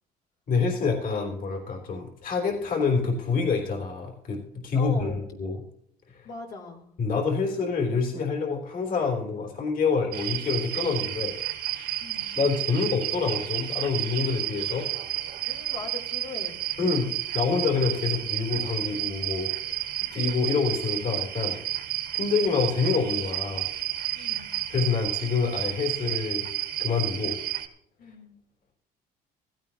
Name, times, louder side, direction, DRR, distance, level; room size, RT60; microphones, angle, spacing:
voice 1, 0.5-5.6 6.1-6.3 7.0-11.4 12.4-14.9 16.8-19.8 20.1-21.6 22.1-23.7 24.7-26.4 26.8-27.4, left 4 dB, 55° left, 1 dB, 3.6 m, -27 dB
voice 2, 4.7-5.2 6.2-6.9 12.0-12.4 15.5-16.6 24.1-24.6 28.0-28.4, left 4 dB, 75° left, -1 dB, 3.8 m, -40 dB
sound 1, 10.1-27.7, right 13 dB, 70° right, 1.8 m, -31 dB
16.0 x 16.0 x 2.9 m, 0.72 s
cardioid pair, 110°, 17 cm